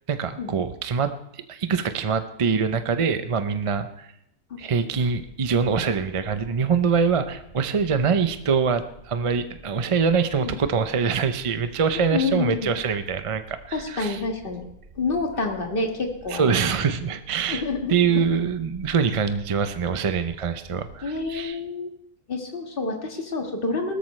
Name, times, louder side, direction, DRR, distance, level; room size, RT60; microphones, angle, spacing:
voice 1, 0.1-4.1 4.6-14.2 16.3-17.6 17.9-21.6, right 6 dB, 40° right, 9 dB, 0.4 m, -24 dB
sound 1, 7.1-21.4, right 1 dB, 70° right, 4.8 m, -49 dB
voice 2, 11.9-12.7 13.7-14.6 15.0-16.7 17.5-18.2 21.0-21.9 22.3-24.0, left 3 dB, 40° left, 3 dB, 1.9 m, -28 dB
19.0 x 13.5 x 3.2 m, 0.76 s
omnidirectional pair, 1.4 m